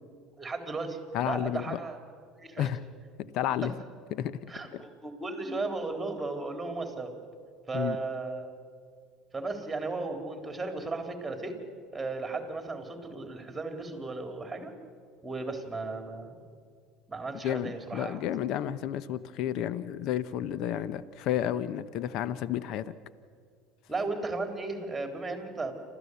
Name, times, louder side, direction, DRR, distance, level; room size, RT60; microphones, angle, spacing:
voice 1, 0.4-1.0 1.2-2.0 2.4-2.7 3.6-3.7 4.5-7.1 7.7-8.5 9.3-11.6 11.9-14.7 15.2-16.4 17.1-18.2 23.9-25.7, right 3 dB, 15° right, 5 dB, 3.8 m, -35 dB
voice 2, 1.1-1.8 2.6-2.8 3.2-3.7 4.1-4.4 4.7-4.8 7.7-8.0 17.4-22.9, left 11 dB, 60° left, 16 dB, 0.8 m, -31 dB
27.5 x 14.0 x 8.2 m, 2.1 s
supercardioid pair, 90°, 0 cm